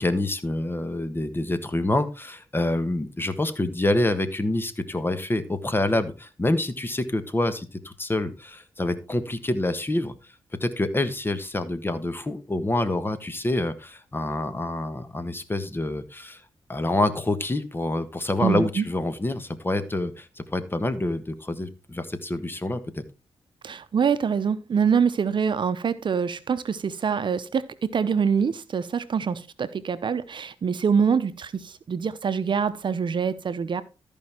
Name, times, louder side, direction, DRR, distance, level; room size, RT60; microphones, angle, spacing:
voice 1, 0.0-10.3 10.6-16.4 16.7-23.0, left 2 dB, 25° left, 1.4 m, -27 dB
voice 2, 18.4-18.8 23.6-33.8, right 6 dB, 55° right, 0.8 m, -25 dB
13.5 x 5.3 x 4.4 m
cardioid pair, 70°, 9 cm